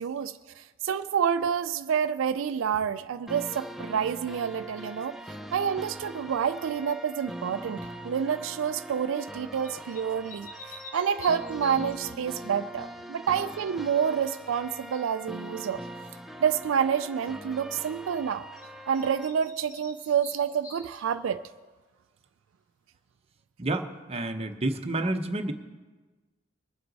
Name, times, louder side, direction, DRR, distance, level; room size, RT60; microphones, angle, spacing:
voice 1, 0.0-5.2 5.5-15.8 16.4-18.4 18.9-21.4, right 7 dB, 80° right, 11 dB, 0.4 m, -28 dB
sound 1, 3.3-19.3, right 1 dB, ahead, 0.5 m, -42 dB
sound 2, 7.4-7.8 9.6-12.2 18.6-18.7 18.9-21.4, left 3 dB, 45° left, 1.8 m, -48 dB
voice 2, 23.6-25.5, right 2 dB, 30° right, 5 dB, 0.8 m, -29 dB
21.5 x 7.8 x 4.0 m, 1.3 s
head